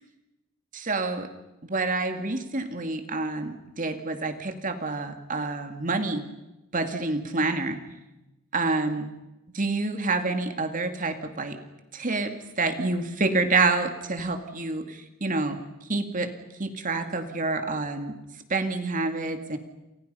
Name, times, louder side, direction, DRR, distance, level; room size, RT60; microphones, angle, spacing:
voice 1, 0.7-1.3 1.6-6.2 6.7-7.8 8.5-9.1 9.5-11.6 11.9-15.6 15.9-16.3 16.6-18.2 18.5-19.6, right 3 dB, 35° right, 7 dB, 2.3 m, -28 dB
29.0 x 28.0 x 5.6 m, 1.0 s
head